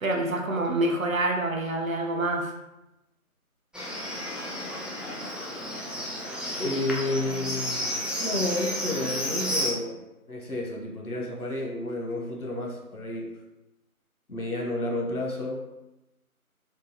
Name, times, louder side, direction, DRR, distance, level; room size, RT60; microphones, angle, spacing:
voice 1, 0.0-2.5, right 2 dB, 65° right, 1 dB, 0.7 m, -26 dB
Livestock farm animals working animals, 3.7-9.7, equal, ahead, 0.4 m, -32 dB
voice 2, 6.6-7.9 8.2-13.4 14.3-15.7, left 2 dB, 85° left, 0 dB, 1.0 m, -31 dB
3.8 x 2.3 x 2.7 m, 0.92 s
figure-of-eight pair, 170°, 44 cm